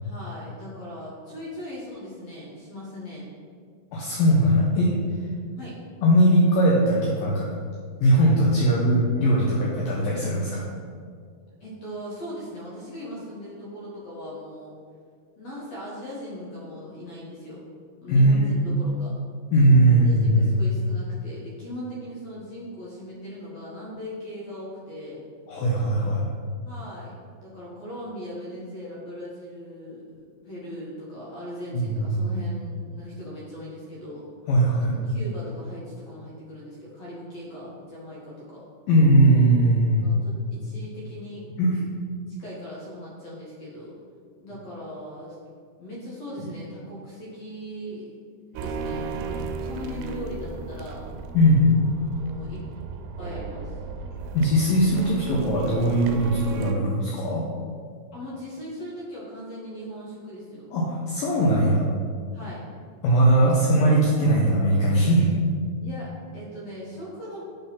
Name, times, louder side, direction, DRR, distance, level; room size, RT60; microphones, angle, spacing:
voice 1, 0.0-3.3 5.6-5.8 11.6-14.7 15.4-17.6 18.0-19.1 19.9-25.2 26.6-34.3 34.8-38.6 40.0-41.4 42.4-44.0 44.4-45.4 45.8-48.1 48.5-51.0 52.0-52.6 53.2-53.8 58.1-60.7 62.3-62.6 63.4-63.5 65.8-67.4, equal, 55° left, -6 dB, 1.9 m, -39 dB
voice 2, 3.9-4.9 6.0-7.5 8.0-10.6 18.1-18.5 19.5-20.6 25.5-26.2 31.7-32.3 34.5-34.9 38.9-40.1 41.6-41.8 51.3-51.7 54.3-57.4 60.7-61.8 63.0-65.3, right 1 dB, 75° left, -4 dB, 2.2 m, -20 dB
sound 1, 48.6-56.7, right 4 dB, 85° right, 2.6 m, -35 dB
9.0 x 4.1 x 5.7 m, 2.1 s
omnidirectional pair, 4.9 m